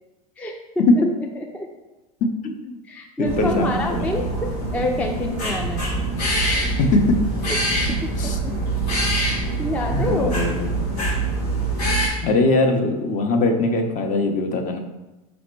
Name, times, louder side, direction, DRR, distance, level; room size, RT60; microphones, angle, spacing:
voice 1, 2.2-2.8 3.2-4.1 6.8-7.2 8.2-8.4 9.9-10.9 12.2-14.8, left 2 dB, 40° left, 4 dB, 0.7 m, -21 dB
voice 2, 2.9-5.9 7.5-7.6 8.2-8.6 9.1-10.4, left 1 dB, 10° left, 2 dB, 0.3 m, -28 dB
sound 1, 3.2-12.1, right 2 dB, 90° left, 1.3 m, -24 dB
5.1 x 2.1 x 4.5 m, 1.1 s
hypercardioid pair, 90°, 20 cm